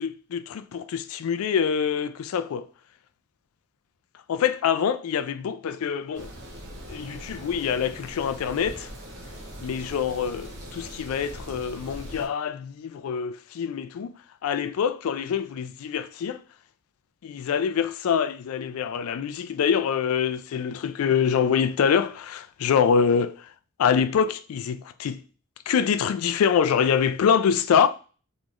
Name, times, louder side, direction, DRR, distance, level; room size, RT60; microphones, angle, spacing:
voice 1, 0.0-2.6 4.3-6.3 6.9-8.9 9.6-14.1 14.4-16.4 17.2-23.4 23.8-25.2 25.7-27.9, left 7 dB, 80° left, 0.3 m, -25 dB
sound 1, 6.1-12.3, equal, 55° right, 1.0 m, -41 dB
3.8 x 3.0 x 2.5 m
head